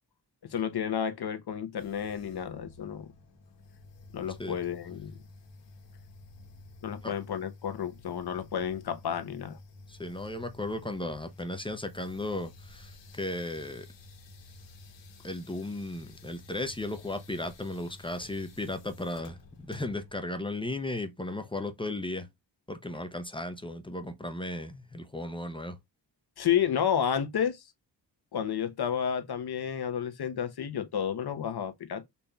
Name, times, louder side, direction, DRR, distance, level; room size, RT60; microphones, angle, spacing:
voice 1, 0.5-3.1 4.1-5.2 6.8-9.6 26.4-27.6 28.3-32.0, left 8 dB, 60° left, 0.9 m, -31 dB
sound 1, 1.8-20.2, left 2 dB, 90° left, 1.3 m, -51 dB
voice 2, 9.9-13.9 15.2-19.4 19.6-22.3 22.7-25.8, left 1 dB, 10° left, 0.6 m, -35 dB
4.1 x 3.4 x 2.2 m
wide cardioid pair, 110°, 42 cm